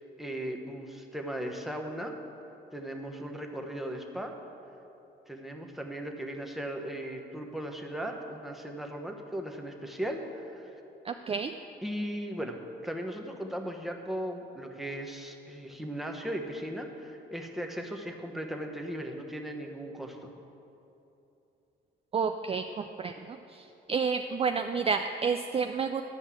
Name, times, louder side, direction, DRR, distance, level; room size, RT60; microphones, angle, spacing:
voice 1, 0.0-2.1 2.7-4.3 5.3-10.8 11.8-12.6 12.8-20.3, right 1 dB, ahead, 2 dB, 1.1 m, -37 dB
voice 2, 11.1-11.6 22.1-23.4 23.9-26.0, right 5 dB, 30° right, 7 dB, 0.4 m, -30 dB
11.5 x 5.4 x 7.4 m, 2.9 s
cardioid pair, 90°, 20 cm